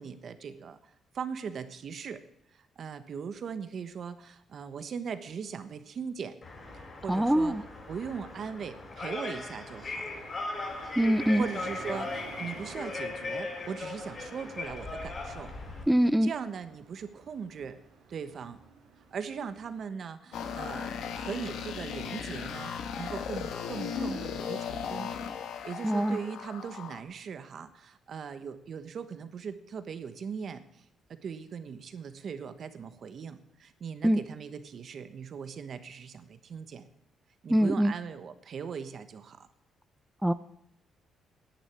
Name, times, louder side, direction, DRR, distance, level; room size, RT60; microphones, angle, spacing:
voice 1, 0.0-2.2 2.5-6.4 6.7-7.5 7.9-10.1 11.4-15.5 16.2-17.8 18.1-18.6 19.1-25.1 25.4-30.8 31.1-36.8 37.4-39.5, right 6 dB, 55° right, 10 dB, 1.2 m, -39 dB
sound 1, 6.4-15.8, left 3 dB, 40° left, 5.1 m, -38 dB
voice 2, 7.1-7.6 11.0-11.4 15.9-16.3 25.8-26.2 34.0-34.2 37.5-37.9 40.2-40.3, right 1 dB, 5° right, 12 dB, 0.5 m, -23 dB
sound 2, 9.6-19.9, right 5 dB, 90° right, 3.3 m, -50 dB
sound 3, 20.3-27.0, left 6 dB, 75° left, 1.4 m, -36 dB
10.5 x 9.2 x 8.6 m, 0.77 s
cardioid pair, 90°, 0 cm